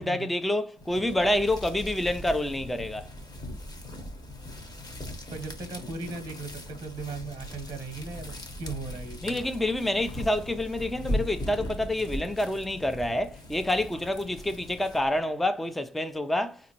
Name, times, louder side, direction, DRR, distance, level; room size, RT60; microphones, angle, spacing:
voice 1, 0.0-3.1 9.2-16.6, left 1 dB, ahead, 0.4 m, -28 dB
sound 1, 0.8-15.2, left 1 dB, 25° left, 1.0 m, -39 dB
voice 2, 5.3-9.4, right 4 dB, 25° right, 1.0 m, -38 dB
3.9 x 2.6 x 2.8 m
cardioid pair, 110°, 17 cm